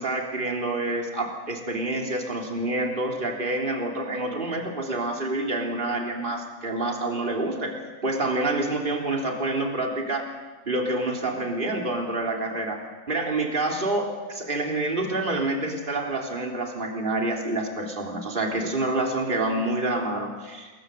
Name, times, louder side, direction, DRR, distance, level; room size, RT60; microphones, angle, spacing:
voice 1, 0.0-10.3 10.6-12.8 13.1-20.7, right 2 dB, 35° right, 1 dB, 3.5 m, -27 dB
28.5 x 22.0 x 7.9 m, 1.3 s
omnidirectional pair, 1.6 m